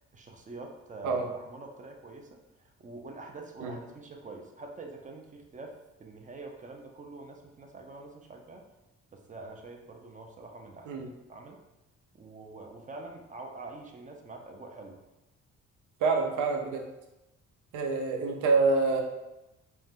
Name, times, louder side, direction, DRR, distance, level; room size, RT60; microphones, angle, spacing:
voice 1, 0.1-8.6 9.1-11.6 12.1-15.0, right 2 dB, 25° right, 2 dB, 0.4 m, -45 dB
voice 2, 16.0-16.8 17.7-19.0, right 4 dB, 85° right, 1 dB, 0.6 m, -26 dB
2.6 x 2.1 x 3.4 m, 0.97 s
cardioid pair, 90°, 30 cm